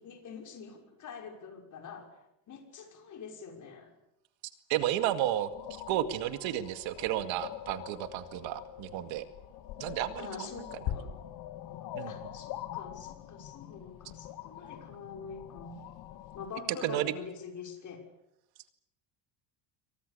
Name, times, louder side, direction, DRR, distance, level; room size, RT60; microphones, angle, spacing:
voice 1, 0.0-2.2 2.5-3.9 10.2-11.1 12.1-15.8 16.3-18.0, left 6 dB, 40° left, 3 dB, 6.1 m, -45 dB
voice 2, 4.7-5.5 5.9-9.3 9.8-10.5 11.9-12.1 16.8-17.1, right 12 dB, 70° right, 9 dB, 2.3 m, -32 dB
sound 1, 5.5-16.5, left 11 dB, 55° left, 2.1 m, -43 dB
28.0 x 24.0 x 6.9 m, 0.85 s
cardioid pair, 155°, 47 cm